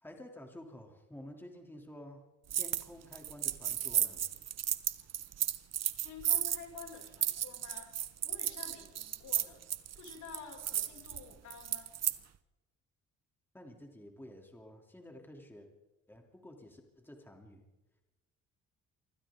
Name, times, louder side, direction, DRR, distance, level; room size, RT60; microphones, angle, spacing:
voice 1, 0.0-2.2 2.5-4.3 13.5-15.7 16.1-17.6, left 1 dB, 5° left, 2 dB, 3.2 m, -51 dB
sound 1, 2.5-2.9 3.1-12.2, right 10 dB, 60° right, 1.1 m, -34 dB
voice 2, 6.0-7.9 8.2-9.6 9.9-11.9, left 6 dB, 75° left, 1 dB, 6.2 m, -50 dB
28.5 x 25.5 x 3.8 m, 1.1 s
cardioid pair, 90°, 30 cm